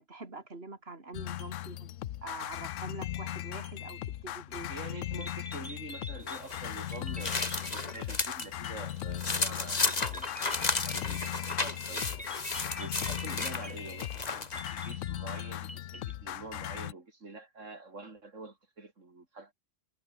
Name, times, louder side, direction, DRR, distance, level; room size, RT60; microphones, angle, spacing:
voice 1, 0.0-2.0 2.2-4.7, right 3 dB, 50° right, 3.8 m, -45 dB
sound 1, 1.1-16.9, left 13 dB, 80° left, 1.0 m, -38 dB
voice 2, 4.7-19.5, right 3 dB, 75° right, 3.6 m, -47 dB
sound 2, 4.9-5.0 5.2-9.2 9.9-16.1, right 1 dB, 5° right, 1.8 m, -46 dB
sound 3, 6.3-8.5 8.9-14.6, left 3 dB, 35° left, 1.9 m, -33 dB
omnidirectional pair, 1.3 m